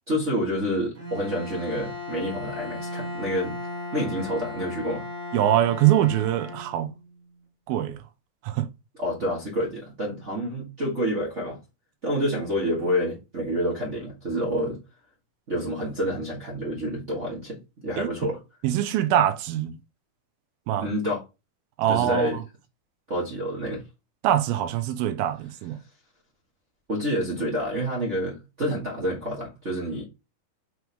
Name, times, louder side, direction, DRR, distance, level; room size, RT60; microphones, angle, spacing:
voice 1, 0.1-3.6 3.9-5.0 9.0-11.6 12.0-14.8 15.5-18.4 20.8-21.2 21.9-22.4 23.1-23.8 26.9-30.0, equal, 55° right, 0.8 m, -28 dB
Bowed string instrument, 0.9-7.1, left 2 dB, 30° right, 1.7 m, -36 dB
voice 2, 5.3-6.9 7.7-8.0 8.4-8.7 18.0-18.1 18.6-19.8 20.7-20.9 21.8-22.4 24.2-25.8, right 11 dB, 85° right, 2.6 m, -23 dB
6.2 x 4.7 x 3.3 m
omnidirectional pair, 4.2 m